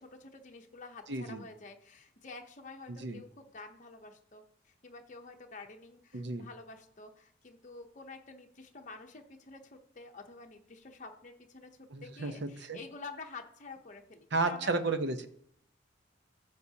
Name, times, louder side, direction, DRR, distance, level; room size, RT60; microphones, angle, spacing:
voice 1, 0.0-14.8, left 3 dB, 40° left, 3 dB, 0.8 m, -49 dB
voice 2, 1.1-1.4 2.9-3.2 6.1-6.5 11.9-12.3 12.7-12.8 14.3-15.3, right 3 dB, 60° right, 9 dB, 0.8 m, -32 dB
14.0 x 6.7 x 2.8 m, 0.69 s
head